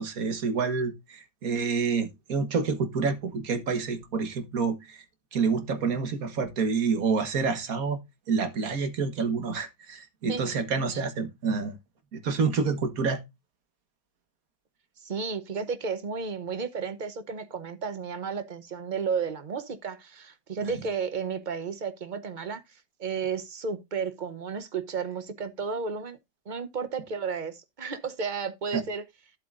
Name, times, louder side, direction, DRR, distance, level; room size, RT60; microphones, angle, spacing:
voice 1, 0.0-5.0 5.3-8.0 8.3-11.8 12.1-13.2 20.6-20.7 28.7-28.8, right 5 dB, 55° right, 1.7 m, -28 dB
voice 2, 15.0-26.2 26.5-29.0, right 5 dB, 40° right, 0.7 m, -33 dB
11.5 x 7.6 x 2.5 m
omnidirectional pair, 1.8 m